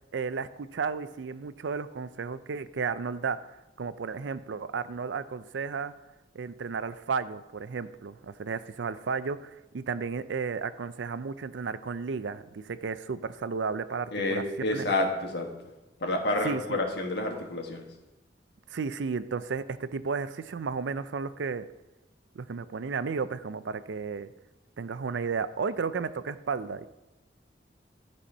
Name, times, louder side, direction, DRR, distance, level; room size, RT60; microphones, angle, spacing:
voice 1, 0.1-5.9 6.3-14.4 14.7-14.8 16.4-16.8 18.7-21.7 22.3-24.3 24.8-26.9, right 5 dB, 85° right, 14 dB, 0.5 m, -33 dB
voice 2, 14.1-15.5 16.0-17.9, left 2 dB, 65° left, 2 dB, 1.5 m, -29 dB
12.5 x 4.3 x 5.4 m, 1.0 s
head